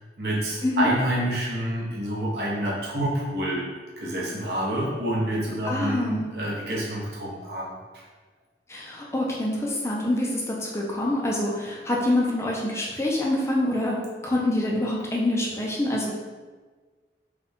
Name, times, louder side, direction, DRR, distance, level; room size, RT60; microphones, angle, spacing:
voice 1, 0.0-3.6 4.0-7.7, right 1 dB, 60° right, -5 dB, 1.1 m, -28 dB
voice 2, 5.6-6.3 8.7-14.0 14.2-16.2, left 1 dB, 15° left, -3 dB, 0.6 m, -26 dB
4.7 x 2.4 x 3.6 m, 1.4 s
head